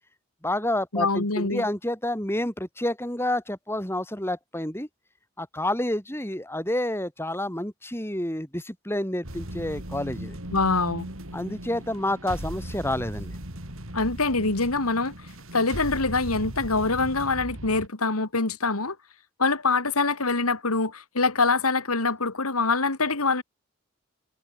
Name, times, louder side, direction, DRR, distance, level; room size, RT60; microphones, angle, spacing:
voice 1, 0.4-4.9 5.4-10.4 11.3-13.4, left 1 dB, 10° left, 5.2 m, -29 dB
voice 2, 0.9-1.6 10.5-11.1 13.9-15.1 15.5-19.0 19.4-23.4, left 3 dB, 85° left, 2.8 m, -24 dB
sound 1, 9.2-17.9, right 1 dB, 65° right, 5.5 m, -38 dB
head